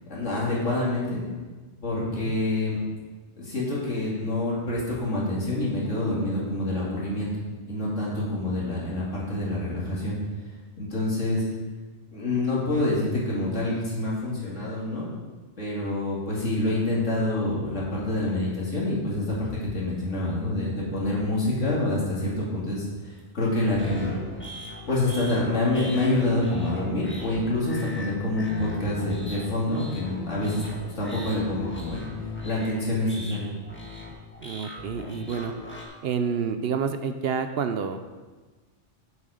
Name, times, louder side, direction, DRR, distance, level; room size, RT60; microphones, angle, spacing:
voice 1, 0.1-1.2 1.8-2.8 3.4-7.3 7.7-10.2 10.8-11.4 12.1-15.1 15.6-24.1 24.9-30.6 31.0-32.1 32.4-33.5, left 2 dB, 75° left, -6 dB, 2.7 m, -27 dB
sound 1, 23.7-35.9, left 3 dB, 10° left, 1.5 m, -39 dB
voice 2, 34.4-35.5 36.0-38.0, right 6 dB, 65° right, 9 dB, 0.7 m, -28 dB
8.0 x 7.4 x 4.9 m, 1.3 s
omnidirectional pair, 1.3 m